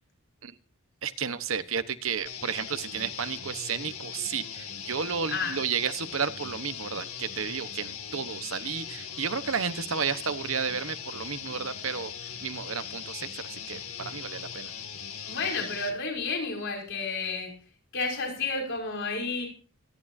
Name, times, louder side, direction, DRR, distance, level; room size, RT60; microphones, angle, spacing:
voice 1, 1.0-12.1 12.4-14.7, right 6 dB, 65° right, 11 dB, 1.1 m, -32 dB
sound 1, 2.3-16.0, left 7 dB, 90° left, 2.1 m, -40 dB
voice 2, 15.2-17.5 17.9-19.5, left 4 dB, 60° left, 1 dB, 5.5 m, -31 dB
25.5 x 11.5 x 2.7 m, 0.38 s
head